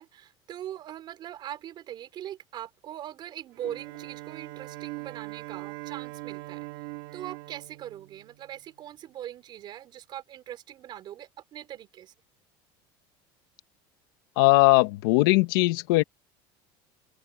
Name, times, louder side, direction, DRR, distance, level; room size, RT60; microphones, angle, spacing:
voice 1, 0.0-6.7 7.1-12.1, right 12 dB, 40° right, 4.4 m, -41 dB
Bowed string instrument, 3.5-8.8, right 23 dB, 75° right, 3.5 m, -41 dB
voice 2, 14.4-16.0, left 21 dB, 85° left, 1.7 m, -20 dB
open air
cardioid pair, 140°, 11 cm